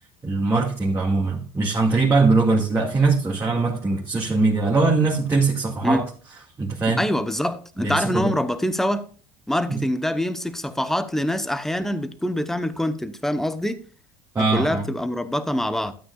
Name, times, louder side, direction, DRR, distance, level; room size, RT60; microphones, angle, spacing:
voice 1, 0.2-6.0 6.6-7.0 7.8-8.3 9.7-9.8 14.3-14.8, right 3 dB, 20° right, 2.1 m, -21 dB
voice 2, 6.9-9.1 9.5-13.8 14.5-15.9, left 1 dB, 5° left, 0.9 m, -25 dB
12.5 x 8.7 x 2.4 m
supercardioid pair, 105°, 12 cm